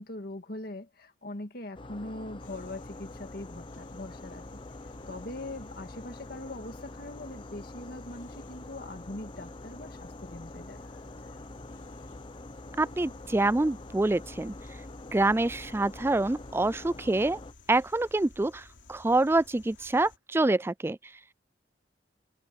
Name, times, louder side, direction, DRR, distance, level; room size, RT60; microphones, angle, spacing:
voice 1, 0.0-4.5 5.1-10.8, left 2 dB, 55° left, 2.0 m, -41 dB
sound 1, 1.7-17.5, left 2 dB, 30° left, 0.7 m, -45 dB
sound 2, 2.4-20.2, left 2 dB, 85° left, 3.2 m, -55 dB
voice 2, 12.8-14.5 15.1-17.4 17.7-21.0, right 2 dB, 15° right, 0.3 m, -26 dB
head